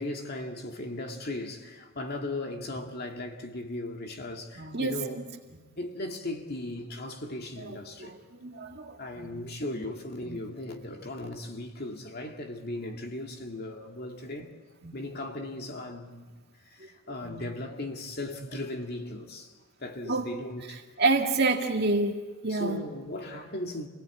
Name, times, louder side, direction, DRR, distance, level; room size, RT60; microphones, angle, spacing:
voice 1, 0.0-5.2 5.8-8.2 9.0-14.5 14.9-16.3 16.7-19.5 19.8-20.8 22.5-23.9, left 2 dB, 45° left, 2.2 m, -37 dB
voice 2, 4.6-5.0 7.6-7.7 8.0-9.4 10.2-10.4 14.8-14.9 17.2-17.5 20.1-20.3 21.0-22.1 22.4-22.8, right 3 dB, 50° right, 2.0 m, -28 dB
28.0 x 18.0 x 8.4 m
head